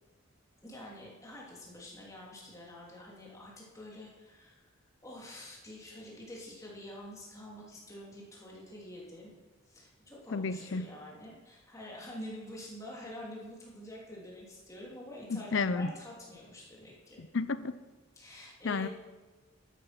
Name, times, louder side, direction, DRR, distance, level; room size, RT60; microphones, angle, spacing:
voice 1, 0.6-4.7 5.0-9.3 9.7-17.2 18.2-18.9, left 1 dB, 15° left, 2.8 m, -47 dB
voice 2, 10.3-11.0 15.3-15.9 17.2-17.8 18.6-18.9, left 4 dB, 65° left, 0.6 m, -32 dB
12.0 x 9.5 x 6.0 m
head